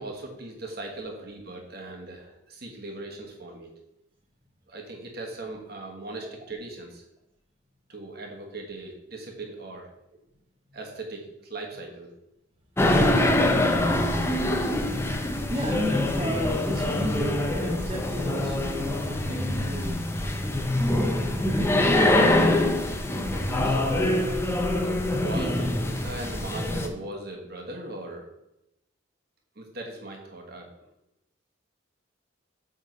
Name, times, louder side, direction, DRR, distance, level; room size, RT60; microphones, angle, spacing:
voice 1, 0.0-3.7 4.7-7.0 7.9-9.9 10.7-12.1 23.6-23.8 24.7-28.3 29.5-30.7, right 2 dB, 55° right, 1 dB, 1.4 m, -39 dB
sound 1, 12.8-26.9, left 1 dB, 15° left, 0.5 m, -24 dB
voice 2, 15.5-20.7 21.5-22.3 23.5-23.8, equal, 30° right, -3 dB, 0.9 m, -34 dB
7.6 x 3.6 x 5.2 m, 0.87 s
head